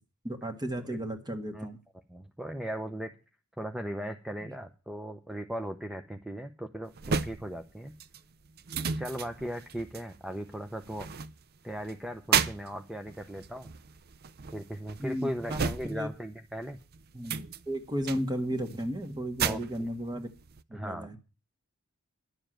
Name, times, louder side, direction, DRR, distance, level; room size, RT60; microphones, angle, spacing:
voice 1, 0.2-1.8 4.4-4.5 15.0-16.1 17.1-20.3 20.7-21.2, equal, 20° right, 7 dB, 1.6 m, -34 dB
voice 2, 2.1-3.1 3.6-7.9 9.0-11.1 11.6-13.7 14.5-16.8 19.4-19.9 20.7-21.1, equal, 5° right, 6 dB, 0.7 m, -38 dB
sound 1, 6.9-16.3 16.6-20.6, right 6 dB, 45° right, 0.5 m, -34 dB
11.5 x 7.1 x 9.0 m, 0.33 s
head